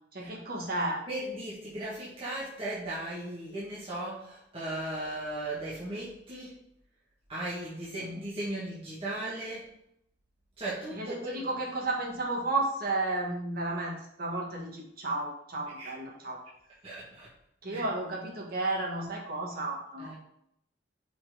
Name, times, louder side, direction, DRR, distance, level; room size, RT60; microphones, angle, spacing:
voice 1, 0.1-1.0 8.0-8.2 10.9-16.4 17.6-20.1, right 2 dB, 55° right, -2 dB, 1.6 m, -33 dB
voice 2, 1.1-6.5 7.3-9.7 10.6-11.4 15.8-15.9 16.8-17.3 17.7-17.8 20.0-20.1, right 1 dB, 30° right, -8 dB, 1.6 m, -37 dB
5.9 x 4.1 x 5.0 m, 0.73 s
head